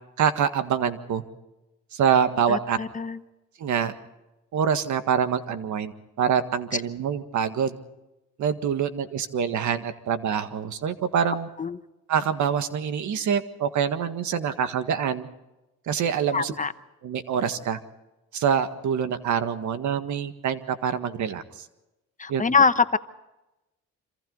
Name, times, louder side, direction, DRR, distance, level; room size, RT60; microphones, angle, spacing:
voice 1, 0.2-1.2 1.9-2.8 3.6-3.9 4.5-7.8 8.4-11.5 12.1-15.3 15.9-16.5 17.0-17.8 18.3-21.7 22.3-22.4, right 7 dB, 70° right, 9 dB, 1.8 m, -25 dB
voice 2, 2.5-3.2 11.6-11.8 16.3-16.7 22.2-23.0, left 5 dB, 25° left, 11 dB, 1.0 m, -23 dB
27.0 x 26.5 x 4.0 m, 0.98 s
cardioid pair, 90°, 30 cm